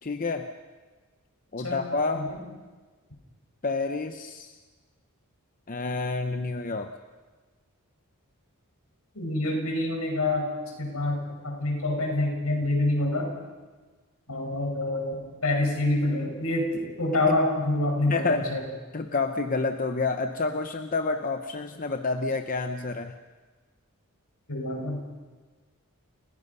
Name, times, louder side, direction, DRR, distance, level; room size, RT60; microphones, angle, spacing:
voice 1, 0.0-0.5 1.5-2.3 3.6-4.6 5.7-6.9 18.1-18.5 18.9-23.2, left 3 dB, 40° left, 6 dB, 0.8 m, -29 dB
voice 2, 9.1-10.5 10.8-13.3 14.3-18.6 24.5-25.0, left 2 dB, 75° left, 1 dB, 6.1 m, -26 dB
29.5 x 16.5 x 5.6 m, 1.4 s
head